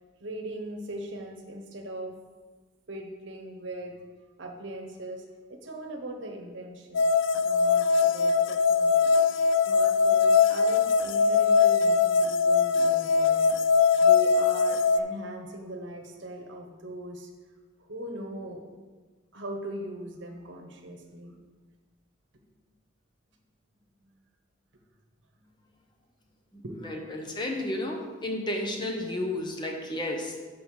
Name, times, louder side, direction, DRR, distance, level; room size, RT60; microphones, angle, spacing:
voice 1, 0.2-2.1 2.9-4.0 4.4-5.2 5.5-7.1 7.4-9.1 9.7-13.5 14.0-17.3 17.8-18.6 19.3-21.4 24.0-24.2 25.4-25.7 26.6-27.2, right 1 dB, 70° right, 3 dB, 1.0 m, -40 dB
sound 1, 6.9-15.0, left 5 dB, 75° left, 0.4 m, -22 dB
voice 2, 26.8-30.4, left 1 dB, 25° left, 1 dB, 0.8 m, -32 dB
5.5 x 5.1 x 6.3 m, 1.4 s
head